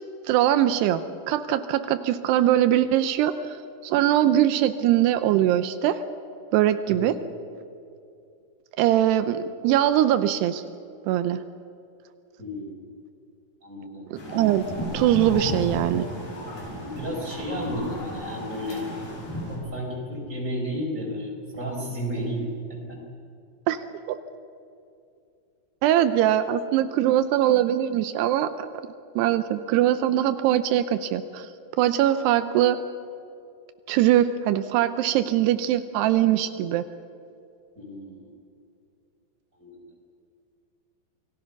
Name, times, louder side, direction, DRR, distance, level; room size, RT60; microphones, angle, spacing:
voice 1, 0.2-6.0 6.5-7.2 8.8-10.6 11.1-11.4 14.1-16.1 23.7-23.8 24.1-24.2 25.8-28.7 29.2-31.5 31.8-32.8 33.9-36.8, right 12 dB, 85° right, 10 dB, 2.8 m, -22 dB
voice 2, 12.4-12.8 13.6-14.1 16.8-18.8 19.5-23.0 37.8-38.3 39.6-39.9, equal, 15° right, -2 dB, 5.7 m, -33 dB
sound 1, 14.1-19.6, equal, 60° left, 7.6 m, -34 dB
28.5 x 20.0 x 5.9 m, 2.5 s
omnidirectional pair, 4.7 m